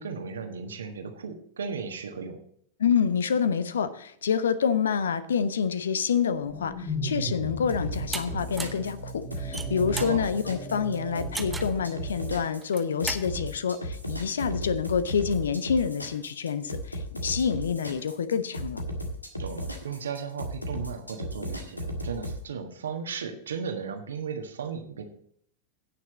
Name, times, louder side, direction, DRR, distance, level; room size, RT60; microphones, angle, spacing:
voice 1, 0.0-2.4 10.0-10.3 19.4-25.0, right 6 dB, 65° right, 6 dB, 1.5 m, -35 dB
voice 2, 2.8-18.8, left 7 dB, 65° left, 14 dB, 0.7 m, -27 dB
sound 1, 6.2-12.5, equal, 40° left, 3.0 m, -37 dB
sound 2, 7.7-22.4, equal, 85° left, 1.5 m, -35 dB
sound 3, 8.1-8.2 8.6-8.8 9.4-10.2 11.3-11.8 12.6-13.2, right 3 dB, 10° right, 0.9 m, -35 dB
16.5 x 6.3 x 4.0 m, 0.66 s
figure-of-eight pair, 90°, 0 cm